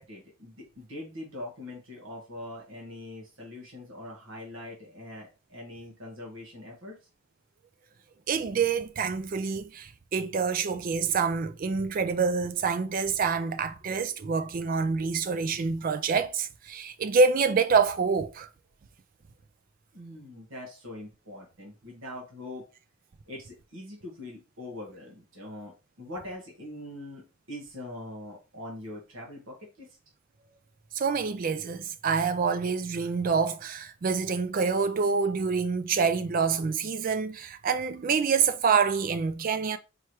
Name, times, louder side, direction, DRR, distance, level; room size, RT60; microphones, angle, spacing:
voice 1, 0.0-7.0 19.9-22.6 23.3-30.0, left 1 dB, 65° right, 1.4 m, -42 dB
voice 2, 8.3-18.5 30.9-39.8, right 5 dB, 40° right, 0.3 m, -26 dB
4.6 x 3.1 x 3.0 m
head